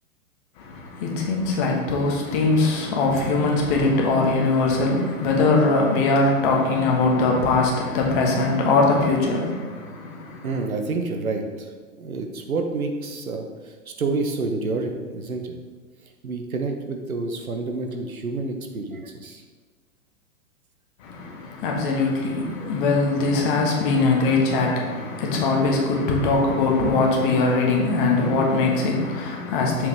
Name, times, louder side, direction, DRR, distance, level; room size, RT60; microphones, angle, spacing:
voice 1, 0.6-10.5 21.0-29.9, left 3 dB, 35° left, 0 dB, 1.4 m, -21 dB
voice 2, 10.4-11.7 12.0-15.6 16.2-19.4, right 3 dB, 75° right, 4 dB, 1.1 m, -28 dB
6.9 x 5.2 x 3.4 m, 1.4 s
figure-of-eight pair, 110°, 43 cm